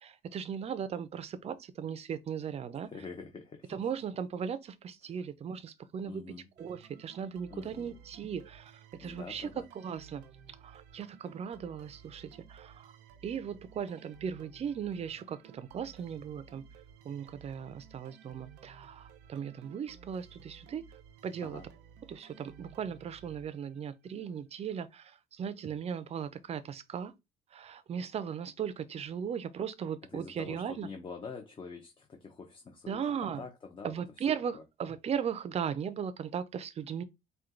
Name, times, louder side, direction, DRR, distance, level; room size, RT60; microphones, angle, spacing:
voice 1, 0.0-2.9 3.7-6.2 6.6-9.5 9.7-10.2 10.6-12.9 13.2-16.6 17.0-20.8 21.2-21.6 22.1-27.1 27.5-30.9 32.9-33.4 33.8-37.0, right 7 dB, 40° right, 0.5 m, -37 dB
voice 2, 2.8-3.7 6.1-6.5 7.5-8.0 9.0-9.7 21.4-21.7 30.1-34.2 34.5-34.6, left 5 dB, 30° left, 0.8 m, -46 dB
sound 1, 6.6-24.1, right 7 dB, 90° right, 0.7 m, -56 dB
4.4 x 2.3 x 3.8 m
cardioid pair, 110°, 17 cm